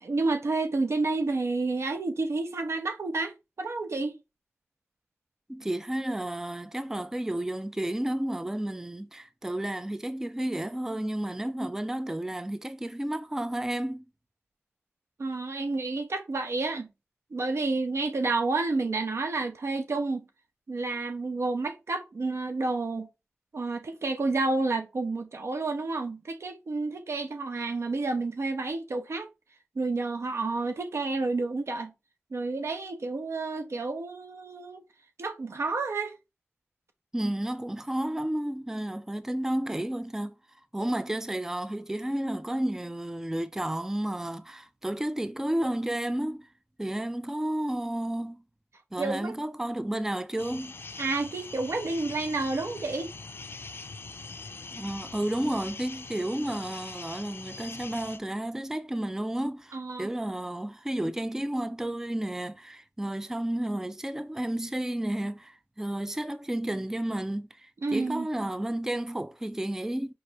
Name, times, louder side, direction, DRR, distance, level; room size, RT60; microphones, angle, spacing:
voice 1, 0.0-4.2 15.2-16.9 17.3-20.2 20.7-23.1 23.5-29.3 29.8-31.9 32.3-34.8 35.2-36.2 49.0-49.3 51.0-53.1 59.7-60.1 67.8-68.3, right 3 dB, 80° right, 0.7 m, -30 dB
voice 2, 5.5-14.1 37.1-40.3 40.7-46.5 46.8-48.4 48.9-50.8 54.7-70.1, right 1 dB, 10° right, 0.3 m, -32 dB
sound 1, 50.4-58.2, left 4 dB, 55° left, 0.4 m, -42 dB
4.9 x 3.2 x 2.8 m
wide cardioid pair, 90°, 5 cm